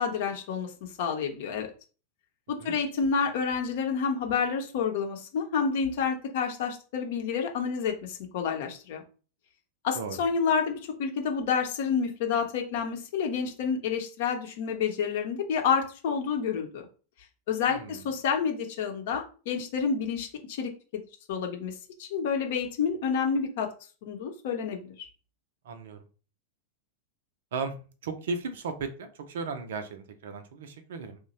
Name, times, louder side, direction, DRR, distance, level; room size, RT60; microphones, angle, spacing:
voice 1, 0.0-1.7 2.5-9.0 9.8-16.8 17.5-20.7 21.3-23.7 24.0-25.1, left 6 dB, 55° left, 3 dB, 0.7 m, -29 dB
voice 2, 17.7-18.0 25.6-26.1 27.5-27.8 28.0-31.2, right 4 dB, 60° right, 8 dB, 0.5 m, -36 dB
3.0 x 2.2 x 4.1 m, 0.36 s
figure-of-eight pair, 90°, 0 cm